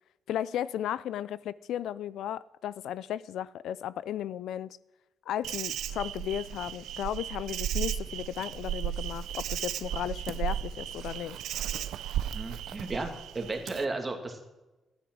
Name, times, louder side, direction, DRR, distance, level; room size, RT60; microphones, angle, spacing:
voice 1, 0.3-4.8 5.3-11.4, left 11 dB, 85° left, 18 dB, 0.4 m, -35 dB
Insect, 5.4-13.8, right 11 dB, 90° right, 0.6 m, -35 dB
voice 2, 12.3-14.5, right 3 dB, 20° right, 4 dB, 2.3 m, -34 dB
14.5 x 11.5 x 6.2 m, 1.0 s
cardioid pair, 135°, 0 cm